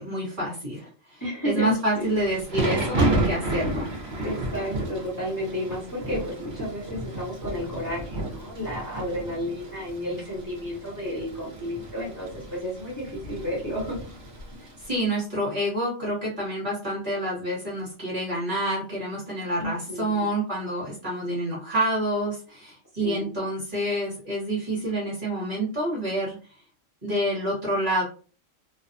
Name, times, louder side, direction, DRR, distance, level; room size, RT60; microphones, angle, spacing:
voice 1, 0.0-3.9 14.9-26.4 27.0-28.0, right 1 dB, 40° right, -5 dB, 1.2 m, -28 dB
voice 2, 1.2-2.1 4.2-14.0 19.6-20.3 23.0-23.3, left 1 dB, 15° left, -7 dB, 1.1 m, -32 dB
Thunder / Rain, 1.8-14.9, right 1 dB, 60° right, 1.0 m, -32 dB
2.5 x 2.2 x 2.5 m, 0.39 s
omnidirectional pair, 1.4 m